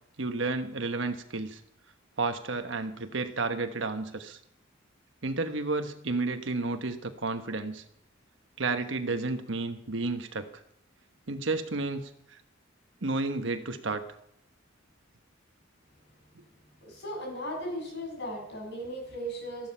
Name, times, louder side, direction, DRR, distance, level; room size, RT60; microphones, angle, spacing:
voice 1, 0.2-1.6 2.2-4.4 5.2-7.8 8.6-10.5 11.3-12.0 13.0-14.0, right 3 dB, 70° right, 7 dB, 1.2 m, -31 dB
voice 2, 16.8-19.7, equal, 60° left, -1 dB, 6.5 m, -37 dB
13.5 x 12.0 x 5.6 m, 0.72 s
head